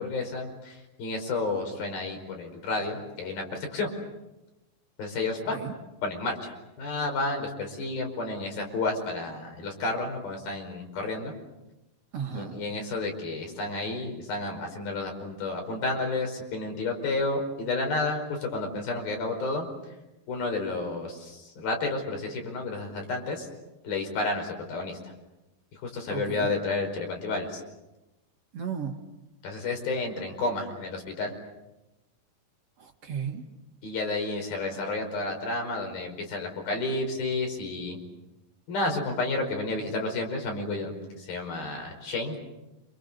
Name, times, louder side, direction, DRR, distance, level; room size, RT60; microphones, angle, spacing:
voice 1, 0.0-3.4 3.7-3.9 5.0-5.6 6.0-11.3 12.3-19.7 20.3-23.5 23.8-25.0 25.8-27.6 29.4-31.3 33.8-38.0 38.7-42.4, left 3 dB, 85° left, 3 dB, 7.0 m, -31 dB
voice 2, 12.1-12.6 26.1-26.5 28.5-29.0 32.8-33.4, right 7 dB, 50° right, 3 dB, 2.7 m, -34 dB
28.5 x 27.5 x 6.9 m, 1.0 s
omnidirectional pair, 4.1 m